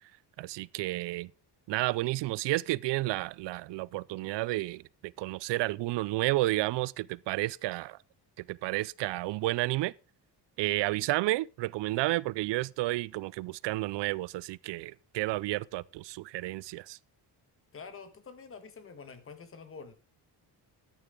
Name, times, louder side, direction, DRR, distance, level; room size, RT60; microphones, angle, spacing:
voice 1, 0.4-1.3 1.7-8.0 8.5-9.9 10.6-17.0, right 18 dB, 85° right, 0.5 m, -31 dB
voice 2, 17.7-19.9, left 5 dB, 30° left, 1.7 m, -47 dB
14.0 x 10.5 x 3.7 m
cardioid pair, 170°, 41 cm